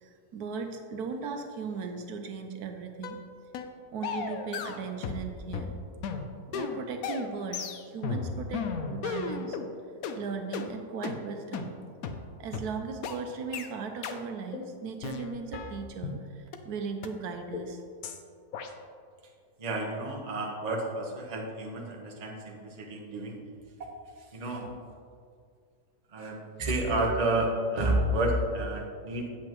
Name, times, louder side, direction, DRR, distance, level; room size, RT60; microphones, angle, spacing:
voice 1, 0.0-3.2 3.9-5.7 6.5-8.6 8.9-9.6 10.2-11.7 12.4-17.8, right 5 dB, 80° right, 5 dB, 1.2 m, -37 dB
sound 1, 3.0-3.2 3.5-3.7 4.0-5.3 5.5-9.7 10.0-10.2 10.5-10.7 11.0-11.2 11.5-11.7 12.0-12.2 12.5-12.7 13.0-13.2 13.5-13.7 14.0-14.2 14.5-14.7 15.0-16.2 16.5-16.6 17.0-17.1 17.5-17.7 18.0-18.2 18.5-18.7, left 5 dB, 70° left, 1.0 m, -35 dB
voice 2, 19.6-23.4 24.3-24.7 26.1-29.3, right 1 dB, 30° right, 0 dB, 0.9 m, -30 dB
8.4 x 7.8 x 3.0 m, 2.2 s
omnidirectional pair, 1.7 m